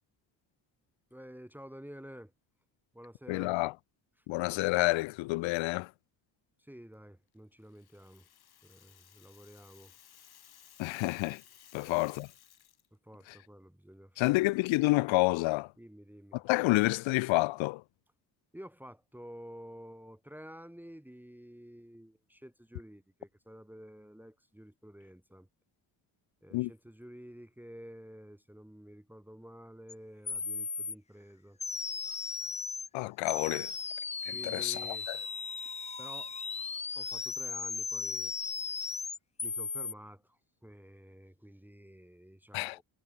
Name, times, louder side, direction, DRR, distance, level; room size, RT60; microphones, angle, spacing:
voice 1, 1.1-2.3 2.9-3.6 4.2-4.3 6.6-8.3 8.6-9.9 11.7-12.0 13.0-14.4 15.8-16.4 18.5-25.5 26.4-31.6 34.3-35.1 35.6-35.7 36.0-36.3 36.9-38.3 39.4-42.8, equal, 5° right, 1.7 m, -51 dB
voice 2, 3.3-3.7 4.3-5.9 10.8-11.4 11.7-12.3 14.2-15.7 16.3-17.8 26.5-26.7 32.9-33.7 34.3-35.2 42.5-42.8, left 21 dB, 85° left, 0.6 m, -29 dB
Rattle (instrument), 7.6-12.9, left 10 dB, 55° left, 1.9 m, -59 dB
sound 1, 29.9-30.0 30.3-30.9 31.6-32.9 33.3-39.9, left 5 dB, 15° left, 0.4 m, -37 dB
cardioid pair, 85°, 45 cm